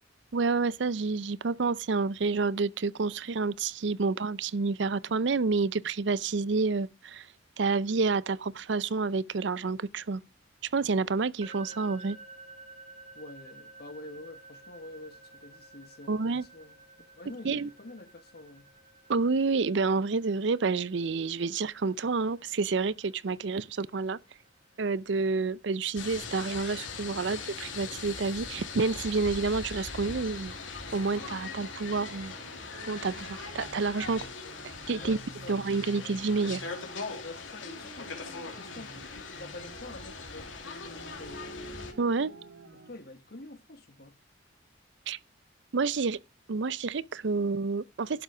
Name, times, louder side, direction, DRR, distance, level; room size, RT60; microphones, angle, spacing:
voice 1, 0.3-7.3 7.6-10.2 10.7-12.2 16.1-16.4 17.4-17.7 19.1-24.2 24.8-30.5 30.9-32.3 32.9-34.3 34.6-35.2 35.5-36.7 42.0-42.3 45.1-45.2 45.7-46.2 46.5-48.2, right 4 dB, 65° right, 0.5 m, -29 dB
sound 1, 11.4-25.3, right 3 dB, 35° right, 1.2 m, -53 dB
voice 2, 13.1-16.8 17.2-18.7 35.0-35.6 37.2-41.7 42.7-44.2, left 2 dB, 55° left, 1.6 m, -47 dB
sound 2, 26.0-41.9, left 4 dB, 85° left, 3.0 m, -40 dB
sound 3, 30.9-37.3 37.6-39.1 39.4-40.3 40.8-42.9, right 2 dB, 85° right, 2.6 m, -50 dB
12.0 x 7.1 x 5.0 m
head